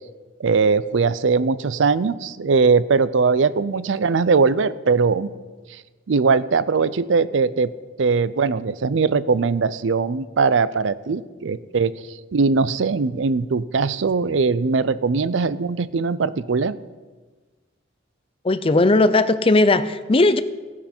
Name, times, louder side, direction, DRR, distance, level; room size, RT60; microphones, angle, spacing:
voice 1, 0.4-5.3 6.1-7.7 8.0-11.9 12.3-16.8, right 4 dB, 80° right, 17 dB, 0.5 m, -20 dB
voice 2, 18.4-20.4, left 2 dB, 30° left, 13 dB, 0.6 m, -17 dB
16.0 x 11.0 x 4.4 m, 1.3 s
head